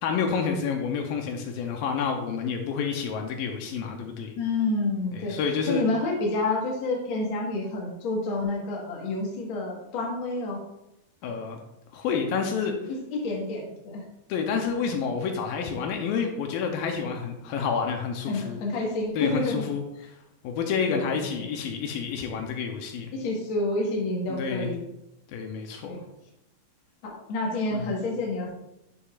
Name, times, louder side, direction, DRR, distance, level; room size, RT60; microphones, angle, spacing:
voice 1, 0.0-4.3 5.1-5.8 11.2-11.6 11.9-12.8 14.3-18.6 19.2-19.8 20.4-23.1 24.3-24.7 25.3-26.0 27.7-27.9, left 6 dB, 80° left, 3 dB, 2.4 m, -29 dB
voice 2, 4.4-5.4 5.7-10.6 12.9-14.0 18.3-19.6 20.9-21.5 23.1-24.8 25.8-26.0 27.0-28.5, left 2 dB, 45° left, -2 dB, 1.8 m, -29 dB
10.0 x 6.7 x 2.5 m, 0.87 s
omnidirectional pair, 4.1 m